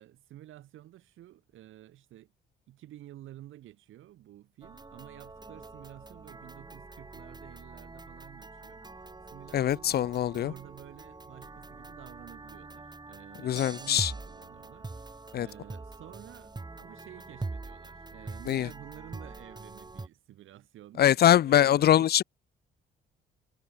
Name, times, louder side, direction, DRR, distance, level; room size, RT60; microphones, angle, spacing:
voice 1, 0.0-2.3 2.7-22.1, right 13 dB, 80° right, 5.3 m, -51 dB
sound 1, 4.6-20.1, right 3 dB, 20° right, 5.0 m, -44 dB
voice 2, 9.5-10.5 13.4-14.1 15.3-15.5 18.5-18.7 21.0-22.2, left 11 dB, 55° left, 0.5 m, -23 dB
cardioid pair, 90°, 20 cm